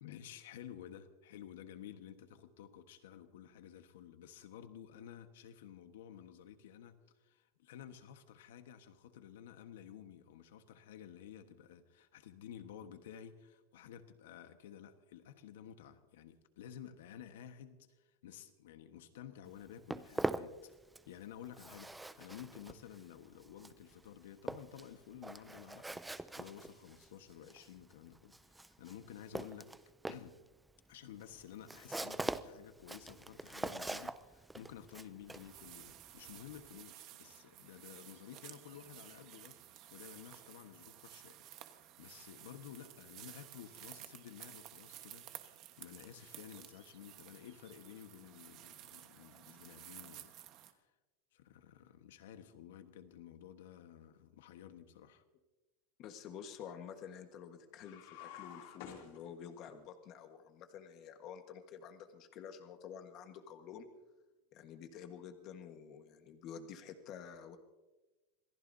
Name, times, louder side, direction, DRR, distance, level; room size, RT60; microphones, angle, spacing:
voice 1, 0.0-20.7 21.1-29.7 30.1-30.4 30.9-45.3 45.8-50.3 50.7-50.9 51.3-55.2, left 9 dB, 80° left, 1.3 m, -53 dB
Walk footsteps, 19.5-21.2 21.4-36.8, right 2 dB, 5° right, 0.4 m, -43 dB
sound 1, 35.3-50.7, right 13 dB, 35° right, 1.2 m, -54 dB
voice 2, 56.0-63.9 64.5-67.6, left 8 dB, 35° left, 1.3 m, -50 dB
sound 2, 57.7-59.8, left 9 dB, 60° left, 2.9 m, -51 dB
27.0 x 18.0 x 2.7 m
supercardioid pair, 165°, 0 cm